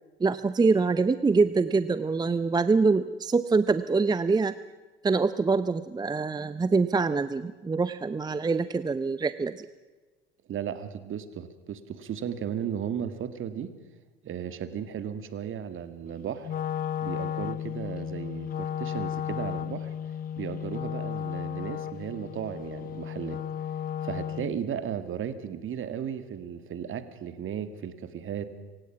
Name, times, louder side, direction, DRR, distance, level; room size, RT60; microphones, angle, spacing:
voice 1, 0.2-4.5 5.0-9.7, right 4 dB, 15° right, 14 dB, 0.6 m, -25 dB
voice 2, 10.5-13.7 14.2-16.5 17.0-19.9 20.4-23.4 24.0-28.5, right 8 dB, 40° right, 12 dB, 1.9 m, -35 dB
Wind instrument woodwind instrument, 16.4-24.6, left 9 dB, 30° left, 0.6 m, -34 dB
26.0 x 16.5 x 6.0 m, 1.3 s
hypercardioid pair, 75°, 31 cm